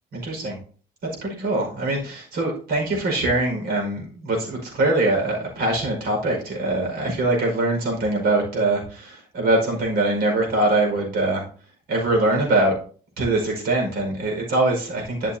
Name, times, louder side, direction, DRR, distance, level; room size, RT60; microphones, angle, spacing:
voice 1, 0.1-0.6 1.2-11.4 11.9-12.7 13.2-15.4, right 2 dB, 70° right, 1 dB, 5.1 m, -23 dB
12.0 x 7.0 x 2.7 m, 0.42 s
cardioid pair, 125°, 17 cm